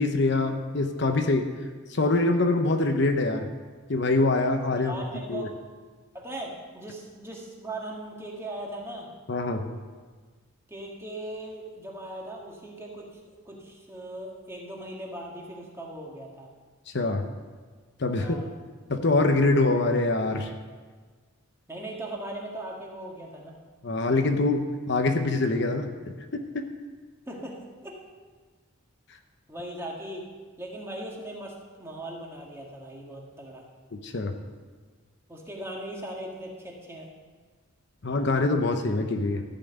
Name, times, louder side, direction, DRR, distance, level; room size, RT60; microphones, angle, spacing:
voice 1, 0.0-1.4 1.9-3.5 3.9-4.9 5.3-5.5 9.3-9.7 16.9-17.2 18.0-18.4 18.9-20.5 23.8-24.6 24.9-25.9 26.5-26.7 34.0-34.3 38.0-39.4, left 2 dB, 55° left, 6 dB, 0.8 m, -24 dB
voice 2, 4.8-5.5 6.1-9.1 10.7-16.5 18.2-18.5 21.7-23.6 27.2-27.9 29.5-30.3 30.6-33.6 35.3-37.1, right 1 dB, 10° right, -2 dB, 1.7 m, -39 dB
14.0 x 5.8 x 8.0 m, 1.5 s
head